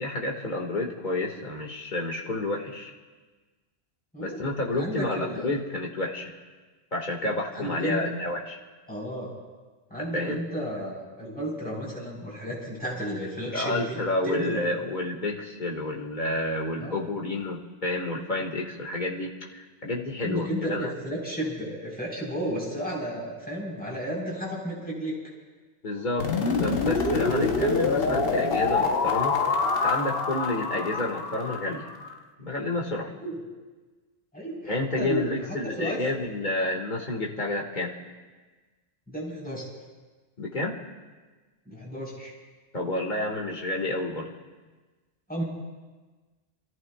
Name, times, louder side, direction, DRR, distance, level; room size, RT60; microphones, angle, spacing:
voice 1, 0.0-2.9 4.2-6.3 6.9-8.6 10.0-10.4 13.4-20.9 25.8-31.9 32.4-33.1 34.6-37.9 40.4-40.8 42.7-44.3, left 2 dB, 40° left, -1 dB, 1.8 m, -30 dB
voice 2, 4.1-4.4 4.8-5.5 7.5-8.1 8.9-9.3 9.9-14.6 16.8-17.0 20.2-25.2 33.1-33.4 34.3-34.7 35.0-35.4 35.8-36.0 39.1-39.7 41.7-42.3 45.3-45.4, equal, 5° left, -5 dB, 3.7 m, -33 dB
sound 1, 26.2-32.1, left 4 dB, 60° left, 1.1 m, -26 dB
29.5 x 14.5 x 2.3 m, 1.3 s
omnidirectional pair, 1.2 m